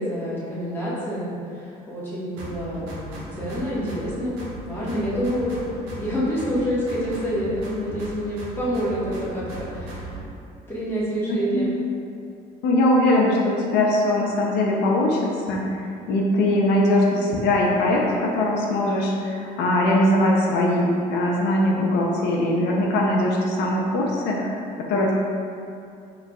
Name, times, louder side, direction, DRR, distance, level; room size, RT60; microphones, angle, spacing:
voice 1, 0.0-4.4 4.6-5.6 6.0-10.1 10.7-11.7, equal, 15° left, -9 dB, 1.3 m, -27 dB
sound 1, 2.4-4.1 4.4-6.1 6.4-8.1 8.4-10.2, right 1 dB, 90° right, 0.8 m, -37 dB
voice 2, 11.3-11.7 12.6-15.8 16.1-25.1, left 1 dB, 85° left, -2 dB, 0.5 m, -21 dB
4.6 x 3.2 x 2.3 m, 2.5 s
cardioid pair, 110°, 17 cm